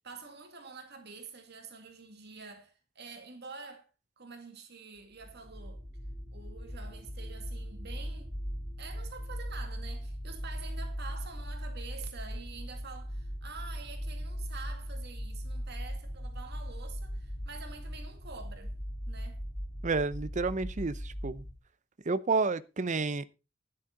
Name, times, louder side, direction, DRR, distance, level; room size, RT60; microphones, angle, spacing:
voice 1, 0.0-3.9 4.2-5.8 6.3-8.3 8.8-18.7 19.1-19.4, right 4 dB, 55° right, 2.2 m, -47 dB
sound 1, 5.2-21.5, equal, 10° left, 2.1 m, -39 dB
voice 2, 19.8-21.4 22.1-23.2, right 3 dB, 35° right, 0.7 m, -30 dB
12.5 x 10.5 x 3.9 m
head